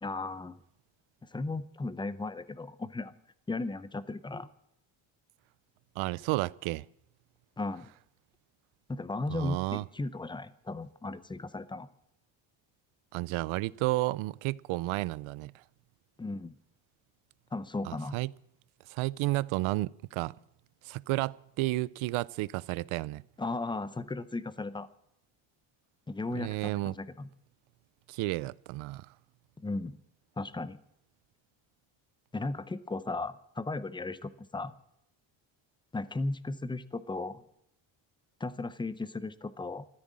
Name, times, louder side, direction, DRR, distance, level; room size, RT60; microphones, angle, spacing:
voice 1, 0.0-0.6 1.3-3.1 3.5-4.5 7.6-7.9 8.9-11.9 16.2-16.5 17.5-18.2 23.4-24.9 26.1-27.3 29.6-30.0 30.4-30.8 32.3-34.7 35.9-37.4 38.4-39.9, left 3 dB, 10° left, 0.6 m, -36 dB
voice 2, 6.0-6.8 9.3-9.8 13.1-15.5 17.8-18.3 18.9-20.3 20.8-23.2 26.3-27.0 28.1-29.1, right 19 dB, 85° right, 0.6 m, -32 dB
14.0 x 13.0 x 7.5 m
cardioid pair, 140°, 47 cm